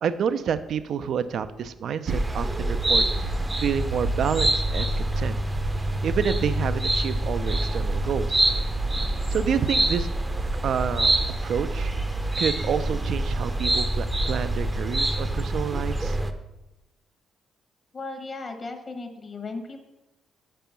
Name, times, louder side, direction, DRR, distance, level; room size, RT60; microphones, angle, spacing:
voice 1, 0.0-5.4 5.8-8.4 9.3-10.1 10.6-11.1 11.4-11.9 12.4-16.2, right 7 dB, 65° right, 12 dB, 0.3 m, -28 dB
sound 1, 2.1-16.3, right 1 dB, 15° right, 0.6 m, -26 dB
voice 2, 17.9-19.8, left 3 dB, 40° left, 6 dB, 1.0 m, -36 dB
5.4 x 5.0 x 5.7 m, 0.98 s
cardioid pair, 90°, 0 cm